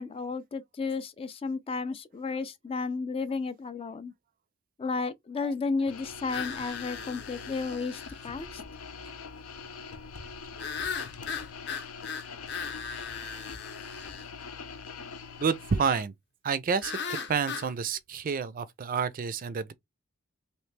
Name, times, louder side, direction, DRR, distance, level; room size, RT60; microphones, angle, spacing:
voice 1, 0.0-4.1 4.8-8.6, left 4 dB, 25° left, 0.3 m, -33 dB
sound 1, 5.9-16.0, left 5 dB, 90° left, 0.7 m, -43 dB
sound 2, 6.3-8.3 10.6-14.3 16.8-17.7, left 6 dB, 55° left, 0.7 m, -37 dB
voice 2, 15.4-16.1 16.4-17.0 17.3-19.7, right 6 dB, 40° right, 0.4 m, -29 dB
3.2 x 2.7 x 3.2 m
head